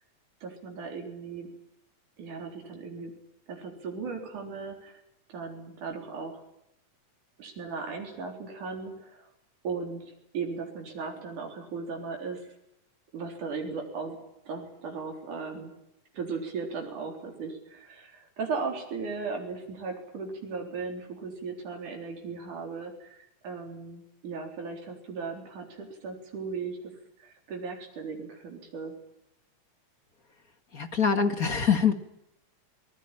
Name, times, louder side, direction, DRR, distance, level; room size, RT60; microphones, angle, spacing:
voice 1, 0.4-1.5 2.2-3.1 3.5-5.0 5.3-6.4 7.4-9.3 9.6-12.5 13.1-14.2 14.5-15.7 16.1-26.9 27.2-28.9, right 4 dB, 90° right, 2 dB, 5.4 m, -37 dB
voice 2, 30.7-31.9, left 6 dB, 35° left, 8 dB, 1.9 m, -24 dB
26.0 x 20.0 x 9.0 m, 0.81 s
omnidirectional pair, 3.4 m